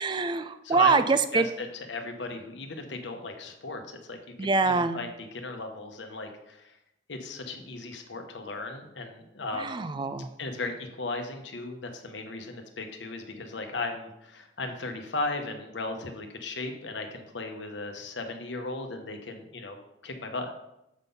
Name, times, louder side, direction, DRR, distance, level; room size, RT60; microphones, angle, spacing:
voice 1, 0.0-1.5 4.4-5.0 9.5-10.3, right 4 dB, 25° right, 11 dB, 0.4 m, -25 dB
voice 2, 0.6-1.0 1.3-6.8 7.1-9.8 10.4-19.8 20.0-20.5, left 3 dB, 75° left, 5 dB, 1.0 m, -36 dB
7.2 x 4.0 x 5.3 m, 0.84 s
head